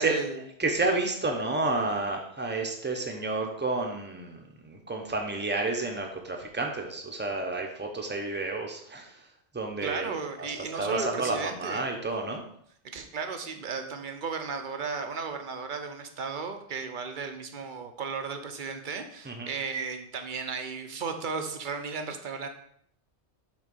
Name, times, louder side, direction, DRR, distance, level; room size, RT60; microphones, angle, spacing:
voice 1, 0.0-0.4 9.8-11.9 12.9-22.5, right 5 dB, 50° right, 6 dB, 0.9 m, -35 dB
voice 2, 0.6-9.1 9.5-10.1 10.4-10.5 10.8-12.4 19.3-19.5, right 3 dB, 10° right, 2 dB, 0.9 m, -30 dB
6.3 x 4.0 x 5.5 m, 0.67 s
omnidirectional pair, 1.2 m